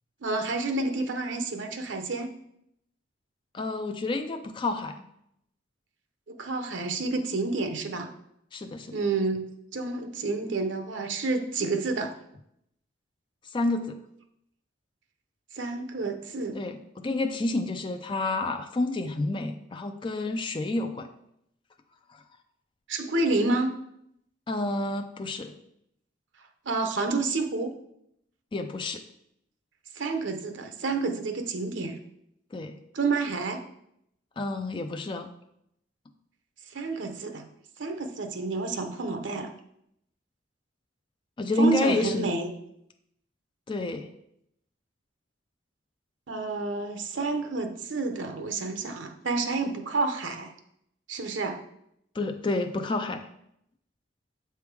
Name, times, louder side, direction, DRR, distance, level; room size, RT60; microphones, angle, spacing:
voice 1, 0.2-2.3 6.4-8.1 8.9-9.5 9.7-12.1 15.5-16.6 22.9-23.8 26.6-27.7 29.9-32.0 32.9-33.6 36.7-37.4 37.8-39.5 41.6-42.5 46.3-50.5 51.1-51.6, right 3 dB, 75° right, 6 dB, 0.8 m, -29 dB
voice 2, 3.5-5.0 8.5-9.0 13.5-14.0 16.5-21.1 24.5-25.5 28.5-29.0 32.5-32.8 34.4-35.3 41.4-42.3 43.7-44.1 52.1-53.3, left 2 dB, 25° left, 6 dB, 0.4 m, -29 dB
7.4 x 3.5 x 4.6 m, 0.76 s
head